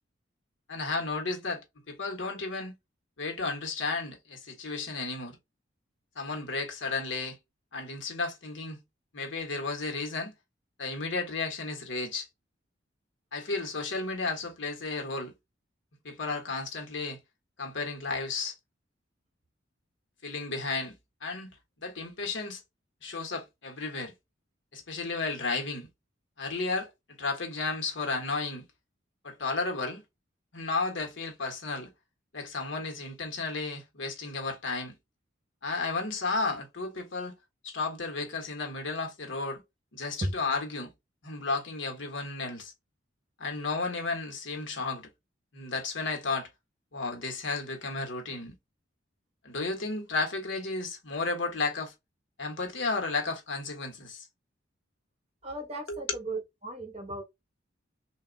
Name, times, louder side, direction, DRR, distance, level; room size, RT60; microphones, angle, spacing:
voice 1, 0.7-2.7 3.2-5.4 6.1-7.4 7.7-8.8 9.1-10.3 10.8-12.3 13.3-15.3 16.0-17.2 17.6-18.5 20.2-21.5 21.8-22.6 23.0-24.1 24.7-25.9 26.4-26.9 27.2-28.7 29.2-30.0 30.5-31.9 32.3-35.0 35.6-37.3 37.6-39.6 39.9-40.9 41.2-42.7 43.4-45.1 45.5-46.5 46.9-48.5 49.4-51.9 52.4-54.2 55.9-56.0, left 3 dB, 75° left, 1.3 m, -33 dB
voice 2, 55.4-57.2, right 2 dB, 30° right, 1.2 m, -36 dB
3.5 x 2.7 x 3.9 m
head